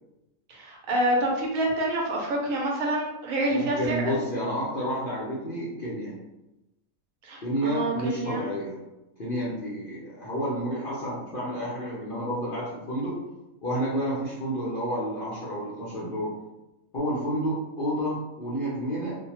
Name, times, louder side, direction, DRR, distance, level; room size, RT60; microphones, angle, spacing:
voice 1, 0.5-4.2 7.2-8.5, right 1 dB, 70° right, -1 dB, 1.0 m, -27 dB
voice 2, 3.5-6.2 7.4-8.8 9.2-13.2 13.6-16.3 16.9-19.1, equal, 50° left, -7 dB, 0.6 m, -30 dB
2.6 x 2.1 x 2.9 m, 0.95 s
omnidirectional pair, 1.5 m